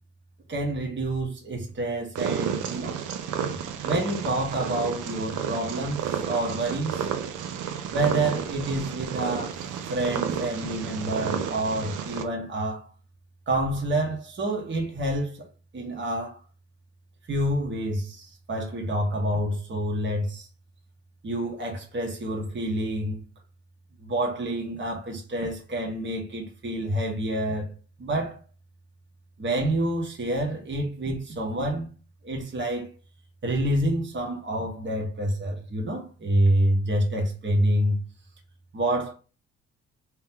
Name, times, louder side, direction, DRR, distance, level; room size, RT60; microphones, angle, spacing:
voice 1, 0.5-3.0 3.8-7.1 7.9-9.6 9.9-12.9 13.5-15.5 15.7-16.4 17.3-20.5 21.2-23.2 24.0-27.7 28.0-28.4 29.4-31.9 32.2-32.9 33.4-38.0 38.7-39.1, right 1 dB, 40° right, 1.4 m, -28 dB
Purr, 2.2-12.3, right 8 dB, 85° right, 0.6 m, -31 dB
3.1 x 3.0 x 3.6 m
cardioid pair, 90°, 30 cm